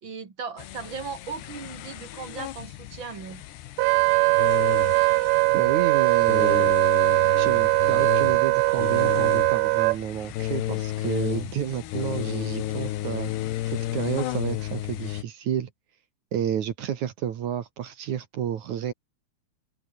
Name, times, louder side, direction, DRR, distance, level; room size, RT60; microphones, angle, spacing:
voice 1, 0.0-3.4, right 5 dB, 35° right, 2.6 m, -37 dB
sound 1, 0.6-15.2, left 13 dB, 80° left, 3.5 m, -33 dB
Wind instrument woodwind instrument, 3.8-10.0, right 25 dB, 90° right, 2.7 m, -21 dB
voice 2, 5.5-6.8 7.4-13.3 13.7-15.7 16.3-18.9, right 9 dB, 55° right, 2.5 m, -30 dB
omnidirectional pair, 4.8 m